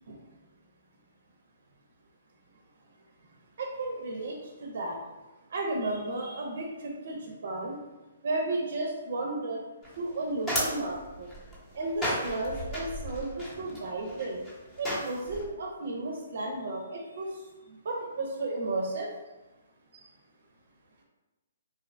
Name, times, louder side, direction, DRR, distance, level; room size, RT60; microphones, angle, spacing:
voice 1, 3.6-5.0 5.5-7.8 8.2-9.6 10.0-11.3 11.7-14.4 14.8-17.4 17.7-19.1 19.9-20.0, right 2 dB, 65° right, 0 dB, 0.5 m, -33 dB
sound 1, 9.8-15.4, equal, 10° left, 0.7 m, -35 dB
2.6 x 2.1 x 2.5 m, 1.1 s
hypercardioid pair, 155°, 0 cm